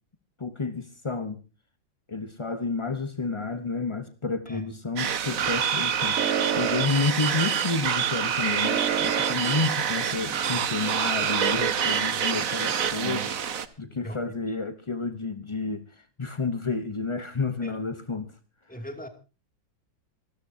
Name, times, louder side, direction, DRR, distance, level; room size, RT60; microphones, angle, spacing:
voice 1, 0.4-1.4 2.1-18.3, left 4 dB, 30° left, 0.5 m, -30 dB
sound 1, 5.0-13.7, right 8 dB, 50° right, 1.3 m, -26 dB
voice 2, 18.7-19.1, equal, 5° left, 2.5 m, -38 dB
26.5 x 13.5 x 2.8 m
omnidirectional pair, 2.1 m